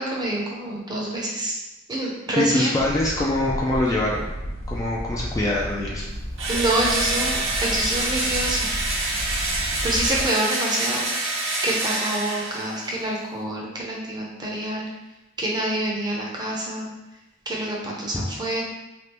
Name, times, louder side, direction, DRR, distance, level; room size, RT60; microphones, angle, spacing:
voice 1, 0.0-1.5 1.9-2.8 6.5-8.7 9.8-14.9 15.4-16.9 17.5-18.6, right 1 dB, 20° right, -3 dB, 0.6 m, -27 dB
voice 2, 2.3-4.3 4.7-6.1 18.1-18.2, left 1 dB, 15° left, -4 dB, 0.3 m, -24 dB
sound 1, 2.8-10.2, equal, 85° left, 0.9 m, -33 dB
Engine / Drill, 6.4-13.0, right 2 dB, 70° right, 0.8 m, -26 dB
3.3 x 2.5 x 2.9 m, 1.0 s
head